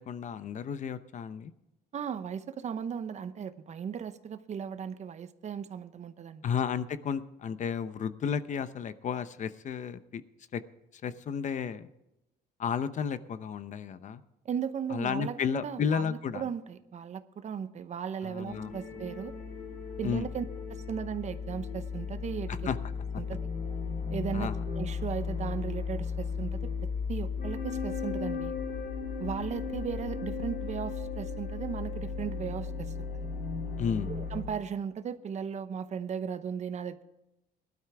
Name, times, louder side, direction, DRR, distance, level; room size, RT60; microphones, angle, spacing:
voice 1, 0.0-1.5 6.4-10.2 10.5-10.6 11.0-11.9 12.6-14.2 14.9-16.5 18.2-19.0 20.0-20.3 22.6-22.8 24.3-24.6 33.8-34.1, left 7 dB, 45° left, 13 dB, 0.8 m, -33 dB
voice 2, 1.9-6.4 14.4-19.3 20.0-20.4 20.7-22.6 23.2-23.4 24.1-28.5 29.2-33.3 34.1-37.0, right 7 dB, 45° right, 12 dB, 0.9 m, -37 dB
sound 1, 18.5-34.4, left 5 dB, 65° left, 3.6 m, -35 dB
18.5 x 12.0 x 3.5 m, 0.90 s
cardioid pair, 110°, 17 cm